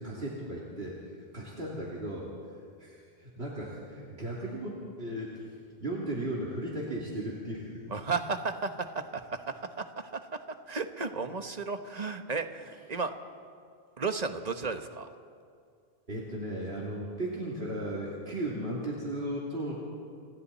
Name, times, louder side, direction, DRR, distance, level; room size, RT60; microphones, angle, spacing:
voice 1, 0.0-2.3 2.8-5.5 5.8-7.7 16.1-19.8, right 1 dB, 75° right, -5 dB, 3.3 m, -36 dB
voice 2, 7.9-9.4 9.8-10.2 10.7-13.1 14.0-15.1, right 4 dB, 40° right, 7 dB, 1.2 m, -33 dB
29.5 x 26.0 x 4.2 m, 2.2 s
omnidirectional pair, 1.0 m